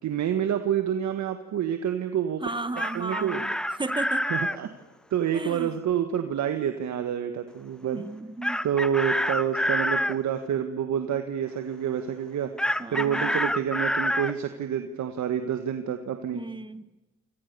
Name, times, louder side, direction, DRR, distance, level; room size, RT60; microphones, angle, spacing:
voice 1, 0.0-2.4 2.9-3.4 4.3-4.7 5.1-8.0 8.6-16.4, right 9 dB, 70° right, 7 dB, 1.9 m, -28 dB
voice 2, 2.4-4.3 5.3-5.8 7.8-8.6 12.8-13.5 16.3-16.9, right 2 dB, 15° right, 14 dB, 1.6 m, -35 dB
Chicken rooster, 2.5-4.6 8.4-10.2 12.6-14.3, equal, 5° left, 0.8 m, -27 dB
28.5 x 26.5 x 7.0 m, 1.1 s
cardioid pair, 90°, 30 cm